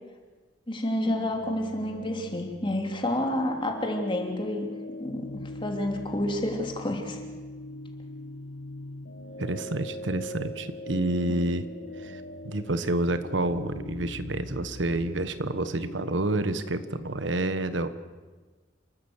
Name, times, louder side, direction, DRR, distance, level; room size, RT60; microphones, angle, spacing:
voice 1, 0.7-4.7 5.0-5.3 5.6-7.2 11.3-11.4, left 1 dB, 30° left, 2 dB, 3.1 m, -29 dB
sound 1, 1.0-17.1, left 1 dB, 80° left, 1.5 m, -41 dB
voice 2, 9.4-11.6 12.0-17.9, right 2 dB, 80° right, 11 dB, 1.2 m, -29 dB
28.5 x 13.0 x 8.1 m, 1.3 s
head